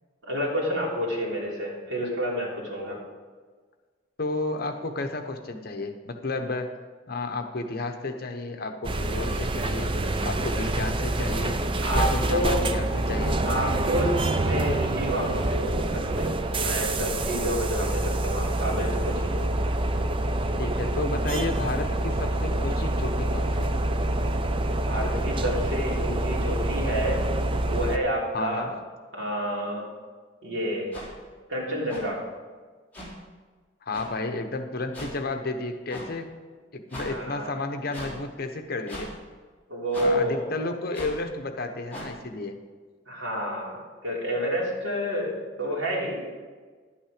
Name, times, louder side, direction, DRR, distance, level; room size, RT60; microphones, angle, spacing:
voice 1, 0.3-3.0 11.8-12.7 13.4-19.4 24.9-27.2 27.6-28.8 29.1-29.9 30.4-30.9 31.5-32.2 37.0-37.5 39.7-40.4 43.0-43.8 44.0-46.3, equal, 80° right, -4 dB, 3.4 m, -29 dB
voice 2, 4.2-6.7 7.1-9.9 10.2-11.6 11.9-13.4 20.6-23.7 28.3-28.7 33.9-36.3 36.7-39.1 40.0-42.6, left 2 dB, 55° left, 6 dB, 1.0 m, -32 dB
sound 1, 8.8-28.0, right 1 dB, 30° right, 0.5 m, -26 dB
sound 2, 30.9-31.1 31.9-32.0 32.9-33.1 33.9-34.1 34.9-35.1 35.9-36.1 36.9-37.1 37.9-38.1 38.9-39.1 39.9-40.1 40.9-41.1 41.9-42.1, left 1 dB, 10° left, 3.5 m, -38 dB
11.5 x 8.7 x 5.1 m, 1.5 s
head